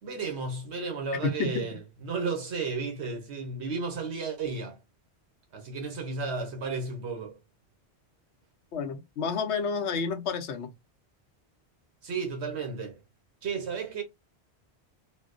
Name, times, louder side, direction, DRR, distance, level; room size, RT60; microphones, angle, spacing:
voice 1, 0.0-4.8 5.5-7.4 12.0-13.0 13.4-14.0, right 4 dB, 80° right, 1.2 m, -33 dB
voice 2, 1.2-1.6 8.7-10.7, left 5 dB, 90° left, 1.0 m, -30 dB
4.2 x 2.1 x 2.5 m
omnidirectional pair, 1.1 m